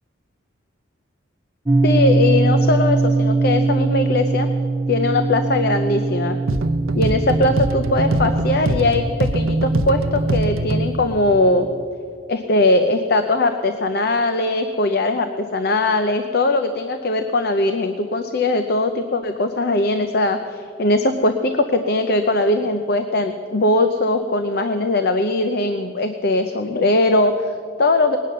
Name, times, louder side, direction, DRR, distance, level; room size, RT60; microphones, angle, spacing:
sound 1, 1.7-11.8, right 3 dB, 15° right, 0.3 m, -22 dB
voice 1, 1.8-4.5 4.9-6.4 7.0-11.7 12.3-28.2, left 2 dB, 50° left, 7 dB, 0.6 m, -20 dB
sound 2, 6.5-11.0, right 1 dB, 90° right, 0.7 m, -22 dB
19.5 x 9.2 x 6.6 m, 2.3 s
head